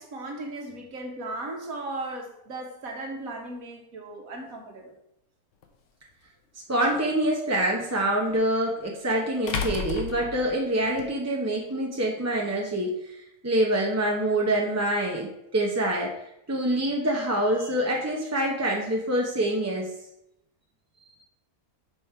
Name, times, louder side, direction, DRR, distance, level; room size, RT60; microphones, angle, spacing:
voice 1, 0.0-4.9, right 2 dB, 65° right, 2 dB, 1.7 m, -36 dB
sound 1, 5.6-5.7 8.3-8.4 9.5-11.1, left 4 dB, 60° left, 1.0 m, -32 dB
voice 2, 6.7-13.2 13.4-16.1 16.5-19.9, right 1 dB, 15° right, -2 dB, 0.6 m, -26 dB
6.2 x 5.2 x 4.4 m, 0.81 s
omnidirectional pair, 1.6 m